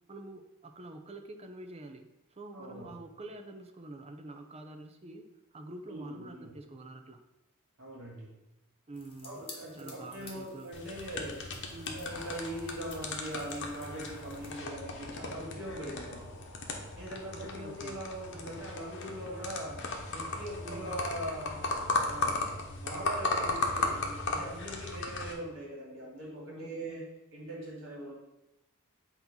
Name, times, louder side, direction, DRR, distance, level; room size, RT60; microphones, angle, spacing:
voice 1, 0.1-7.2 8.9-9.4 9.8-10.7 11.7-12.1 17.3-18.0 20.6-21.0 26.5-27.1, right 2 dB, 30° right, 5 dB, 0.6 m, -47 dB
voice 2, 2.5-3.0 5.9-6.5 7.8-8.4 9.2-11.4 11.9-16.4 17.0-19.8 20.1-21.6 22.0-27.0 27.3-28.1, right 1 dB, 50° right, -3 dB, 2.0 m, -41 dB
sound 1, 8.9-14.6, left 3 dB, 25° left, 1.3 m, -53 dB
sound 2, 10.7-25.3, left 3 dB, 55° left, 1.0 m, -36 dB
sound 3, 12.1-22.5, left 2 dB, 85° left, 1.0 m, -54 dB
8.2 x 2.9 x 5.4 m, 0.94 s
head